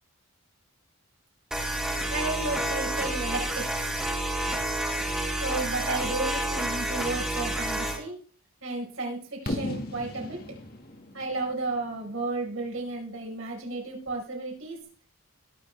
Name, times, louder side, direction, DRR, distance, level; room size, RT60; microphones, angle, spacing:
sound 1, 1.5-8.0, right 1 dB, 5° right, 2.4 m, -29 dB
voice 1, 2.1-3.7 5.4-8.2 8.6-10.4 11.1-14.8, right 2 dB, 65° right, -1 dB, 4.8 m, -33 dB
Fireworks, 9.5-13.3, left 1 dB, 45° left, 1.9 m, -37 dB
21.0 x 7.1 x 3.4 m, 0.41 s
head